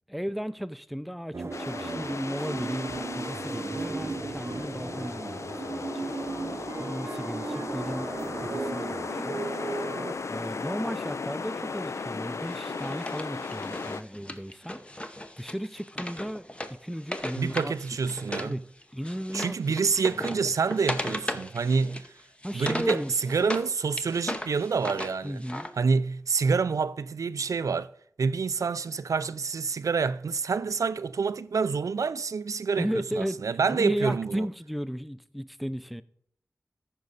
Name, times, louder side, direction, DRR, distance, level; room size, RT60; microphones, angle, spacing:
voice 1, 0.1-6.4 6.8-9.9 10.3-14.8 15.4-17.7 18.4-18.6 18.9-19.5 22.4-23.1 25.2-25.7 32.8-33.4 33.7-36.0, equal, ahead, 0.4 m, -35 dB
sound 1, 1.3-10.1, right 3 dB, 55° right, 0.7 m, -35 dB
sound 2, 1.5-14.0, left 4 dB, 65° left, 0.4 m, -36 dB
Wood, 12.5-18.5 18.8-23.7 24.0-25.7, left 1 dB, 20° left, 0.8 m, -36 dB
voice 2, 17.4-18.6 19.3-22.1 22.5-25.4 25.8-27.9 28.2-34.5, right 5 dB, 85° right, 0.3 m, -27 dB
13.5 x 5.5 x 4.0 m
wide cardioid pair, 50°, 5 cm